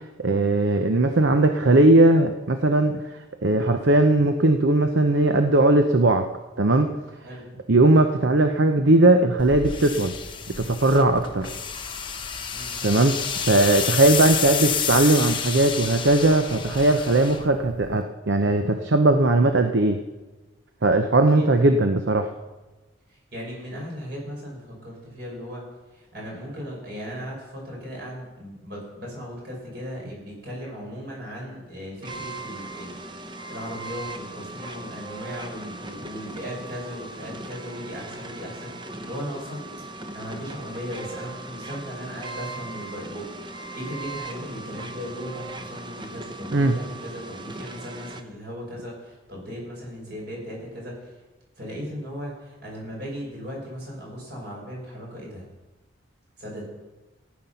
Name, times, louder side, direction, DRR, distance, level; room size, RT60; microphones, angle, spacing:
voice 1, 0.2-3.0 3.4-6.3 6.6-6.9 7.7-10.1 10.6-11.5 12.8-13.2 13.5-20.0 20.8-22.3 46.5-46.8, right 2 dB, 70° right, 7 dB, 0.7 m, -19 dB
sound 1, 9.4-18.0, left 7 dB, 25° left, 0.9 m, -30 dB
voice 2, 21.3-21.8 23.1-25.6 25.9-32.9 33.5-39.7 40.0-51.2 51.6-55.5 56.4-56.6, equal, 55° right, -2 dB, 5.4 m, -37 dB
sound 2, 32.0-48.2, right 2 dB, 25° right, 0.8 m, -38 dB
14.5 x 9.5 x 5.7 m, 1.2 s
head